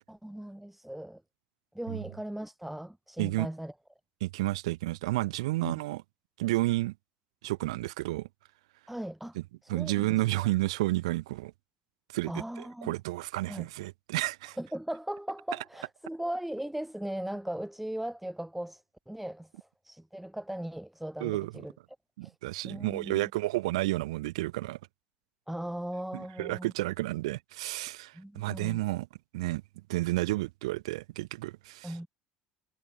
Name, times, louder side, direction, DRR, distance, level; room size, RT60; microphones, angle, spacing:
voice 1, 0.1-1.2 1.7-3.7 8.9-9.4 9.6-10.5 12.3-12.9 13.5-13.7 14.6-21.7 22.2-22.3 22.6-23.3 25.5-26.7 28.1-28.8 31.8-32.1, right 1 dB, 5° right, 7.6 m, -38 dB
voice 2, 4.2-6.0 6.4-6.9 7.4-8.3 9.4-9.5 9.7-11.5 12.1-12.3 12.8-14.6 21.2-21.5 22.2-24.8 26.1-29.1 29.3-29.6 29.9-31.9, right 19 dB, 80° right, 3.8 m, -31 dB
hypercardioid pair, 80°, 3 cm